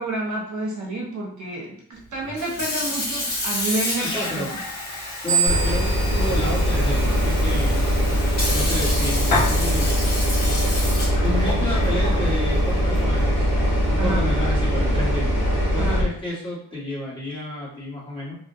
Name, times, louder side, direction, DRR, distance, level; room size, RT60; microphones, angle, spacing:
voice 1, 0.0-4.1 14.0-14.3 15.8-16.1, right 2 dB, 55° right, -3 dB, 0.6 m, -29 dB
Sink (filling or washing) / Fill (with liquid), 2.2-13.8, left 2 dB, 55° left, 1.4 m, -29 dB
voice 2, 4.0-4.5 5.2-7.9 8.5-9.9 11.2-13.5 13.9-15.3 15.7-18.4, left 1 dB, 15° left, -8 dB, 1.1 m, -30 dB
sound 1, 5.3-7.8, right 6 dB, 70° right, 1.1 m, -27 dB
sound 2, 5.5-16.0, equal, 40° left, 1.5 m, -21 dB
3.4 x 2.1 x 2.5 m, 0.63 s
wide cardioid pair, 150°, 36 cm